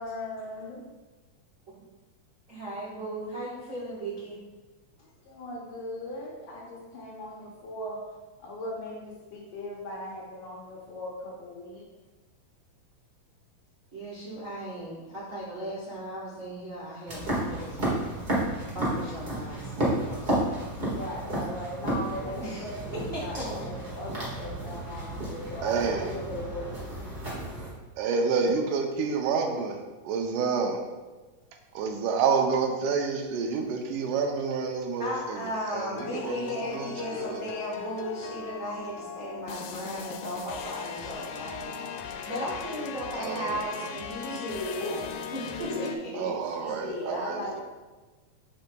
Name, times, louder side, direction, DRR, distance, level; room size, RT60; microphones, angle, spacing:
voice 1, 0.0-0.8 5.0-8.0 8.4-11.9 20.8-26.8 44.2-44.9 45.5-46.3 46.6-47.6, left 1 dB, 65° left, -3 dB, 1.9 m, -38 dB
voice 2, 2.5-4.4 13.9-18.3 18.7-20.5 22.4-22.6 23.1-23.4 35.0-46.6, equal, 60° right, -9 dB, 0.8 m, -36 dB
sound 1, 17.1-27.7, right 1 dB, 30° right, 1.2 m, -32 dB
voice 3, 25.6-26.1 28.0-30.8 31.8-35.4 35.7-36.4 36.7-37.4 43.2-43.6 46.2-47.6, right 5 dB, 85° right, 4 dB, 2.2 m, -28 dB
sound 2, 36.0-46.0, left 7 dB, 85° left, 2.1 m, -39 dB
7.7 x 5.6 x 2.3 m, 1.3 s
omnidirectional pair, 3.6 m